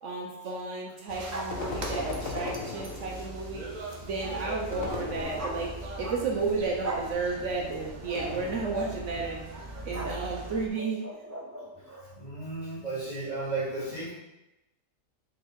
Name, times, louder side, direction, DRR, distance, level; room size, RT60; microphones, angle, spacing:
voice 1, 0.0-3.7 4.0-9.4 9.8-11.0, right 4 dB, 60° right, -1 dB, 1.1 m, -32 dB
sound 1, 1.1-10.7, right 1 dB, 40° right, 0.8 m, -40 dB
sound 2, 1.3-2.2 5.4-6.4 6.8-7.1 8.4-8.6 9.9-12.1, right 2 dB, 25° right, 0.4 m, -39 dB
sound 3, 1.5-3.5 4.7-5.9 8.1-9.1, left 3 dB, 70° left, 1.4 m, -38 dB
voice 2, 12.2-14.1, right 3 dB, 30° left, -7 dB, 2.0 m, -34 dB
5.3 x 4.2 x 4.4 m, 0.96 s
omnidirectional pair, 1.5 m